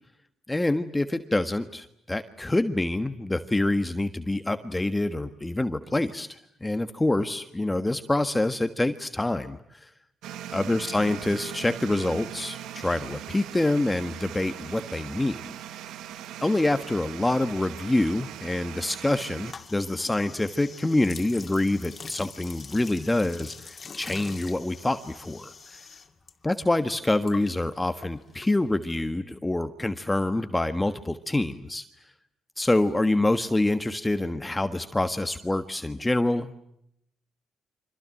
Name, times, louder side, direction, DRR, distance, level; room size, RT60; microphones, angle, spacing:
voice 1, 0.5-9.9 10.5-15.9 16.4-25.8 26.4-31.8 32.6-36.6, left 2 dB, 15° left, 9 dB, 1.4 m, -26 dB
sound 1, 10.2-19.5, right 11 dB, 85° right, 1.1 m, -40 dB
sound 2, 19.4-26.3 26.6-29.0, left 5 dB, 40° left, 2.8 m, -44 dB
30.0 x 25.5 x 7.6 m, 0.77 s
cardioid pair, 90°, 0 cm